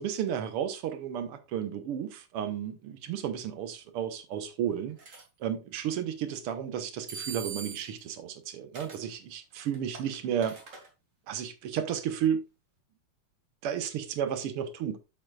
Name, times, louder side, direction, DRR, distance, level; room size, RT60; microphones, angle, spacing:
voice 1, 0.0-10.6 11.3-12.4 13.6-15.0, right 9 dB, 65° right, 1.5 m, -33 dB
sound 1, 5.0-5.2 7.1-8.0 8.7-9.1 9.6-10.9, right 5 dB, 30° right, 2.0 m, -41 dB
9.1 x 8.0 x 2.4 m
omnidirectional pair, 3.6 m